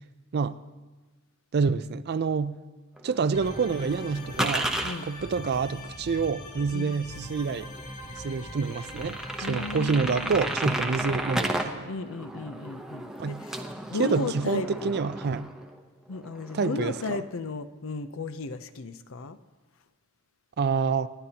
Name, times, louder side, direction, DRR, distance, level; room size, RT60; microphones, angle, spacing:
voice 1, 1.5-2.6 3.0-4.7 5.0-7.7 8.2-9.2 9.5-11.9 13.2-13.4 14.0-15.5 16.5-16.9 20.6-21.1, right 5 dB, 50° right, 0.4 m, -27 dB
sound 1, 3.0-4.9 6.6-6.7 7.1-7.2 7.8-7.9 8.2-8.3 8.7-11.7 12.0-15.8 16.1-17.2, right 1 dB, ahead, 0.8 m, -33 dB
sound 2, 3.3-10.7, left 1 dB, 40° left, 1.9 m, -41 dB
voice 2, 9.4-10.3 11.9-13.6 13.9-15.0 16.1-19.4, left 3 dB, 65° left, 0.6 m, -35 dB
28.0 x 10.5 x 2.9 m
head